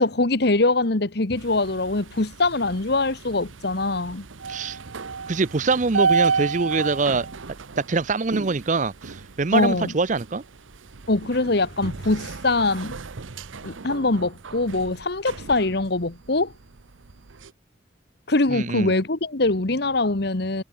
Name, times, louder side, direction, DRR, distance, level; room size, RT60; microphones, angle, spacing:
voice 1, 0.0-4.3 9.5-9.9 11.1-13.0 13.6-16.5 18.3-20.6, left 2 dB, 55° left, 1.3 m, -23 dB
sound 1, 1.3-17.5, right 5 dB, 90° right, 0.9 m, -32 dB
voice 2, 4.5-4.8 5.3-7.3 7.8-10.4 18.5-18.9, right 4 dB, 40° right, 0.6 m, -24 dB
head